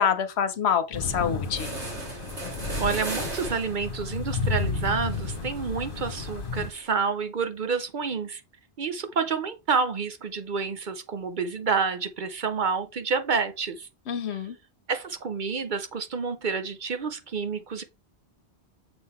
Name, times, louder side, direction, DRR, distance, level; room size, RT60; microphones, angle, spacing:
voice 1, 0.0-1.7 14.1-14.6, left 7 dB, 75° left, 1.1 m, -26 dB
sound 1, 0.9-6.7, left 4 dB, 55° left, 1.3 m, -32 dB
sound 2, 1.1-1.2 1.4-6.9, right 2 dB, 90° right, 2.2 m, -39 dB
voice 2, 2.8-8.4 8.8-13.9 14.9-17.8, right 5 dB, 55° right, 0.7 m, -29 dB
6.9 x 3.8 x 4.3 m
omnidirectional pair, 1.1 m